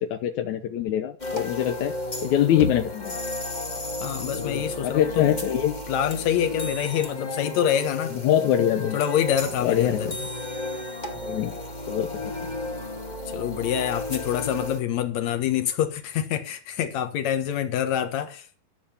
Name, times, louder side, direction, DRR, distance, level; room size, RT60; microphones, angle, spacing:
voice 1, 0.1-1.9 2.2-3.2 4.3-5.7 8.1-9.0 9.6-10.2 11.2-11.6 11.9-12.5, left 11 dB, 75° left, 1.7 m, -24 dB
sound 1, 1.2-14.8, left 1 dB, 40° left, 0.5 m, -33 dB
voice 2, 4.0-5.3 5.9-8.2 8.9-10.1 13.3-18.6, left 10 dB, 60° left, 2.1 m, -26 dB
13.0 x 7.1 x 7.1 m
omnidirectional pair, 4.6 m